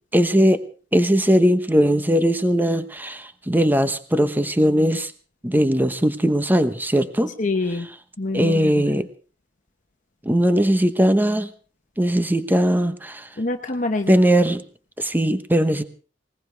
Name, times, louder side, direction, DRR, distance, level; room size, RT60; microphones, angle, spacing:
voice 1, 0.1-0.6 0.9-5.1 5.4-7.3 8.3-9.1 10.2-11.5 12.0-13.3 14.1-14.6 15.0-15.8, equal, 10° right, 11 dB, 1.0 m, -19 dB
voice 2, 7.4-7.9 8.2-8.9 13.4-14.2, left 2 dB, 45° left, 4 dB, 1.1 m, -25 dB
20.5 x 20.0 x 3.5 m, 0.39 s
head